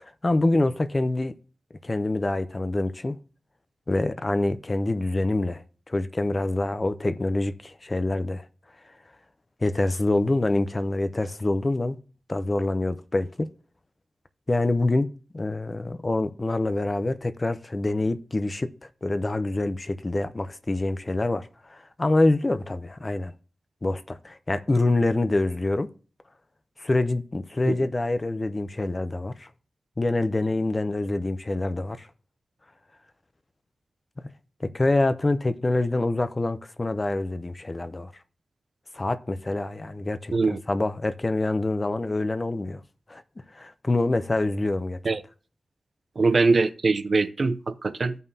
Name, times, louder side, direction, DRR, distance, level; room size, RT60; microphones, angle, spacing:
voice 1, 0.0-1.3 1.8-3.2 3.9-8.5 9.6-12.0 12.3-13.5 14.5-15.1 15.3-18.7 19.0-23.3 23.8-25.9 26.8-29.5 30.0-32.1 34.2-34.3 34.6-38.1 38.9-42.8 43.1-43.2 43.5-45.0, left 2 dB, 25° left, 0.5 m, -26 dB
voice 2, 46.2-48.2, right 3 dB, 45° right, 0.5 m, -22 dB
15.0 x 5.4 x 2.7 m
wide cardioid pair, 145°, 0 cm